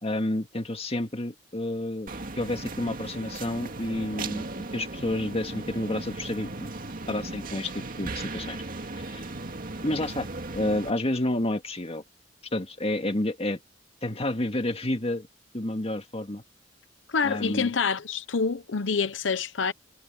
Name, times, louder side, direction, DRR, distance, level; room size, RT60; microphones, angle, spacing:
voice 1, 0.0-4.4 4.7-6.7 7.1-8.6 8.9-9.3 9.8-10.3 10.5-12.0 12.5-13.6 14.0-15.3 15.5-16.4 17.2-17.7, left 1 dB, 35° left, 1.9 m, -30 dB
sound 1, 2.1-10.9, right 2 dB, 50° right, 2.2 m, -37 dB
voice 2, 17.1-19.7, left 5 dB, 85° left, 0.8 m, -27 dB
head